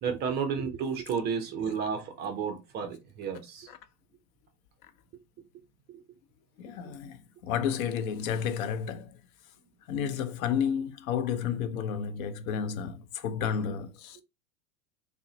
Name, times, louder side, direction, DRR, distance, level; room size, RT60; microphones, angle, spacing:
voice 1, 0.0-3.7 5.9-6.0, right 6 dB, 25° right, 0.4 m, -32 dB
voice 2, 6.6-9.1 9.9-14.2, left 7 dB, 65° left, 0.6 m, -31 dB
3.7 x 2.0 x 2.7 m
hypercardioid pair, 105°, 46 cm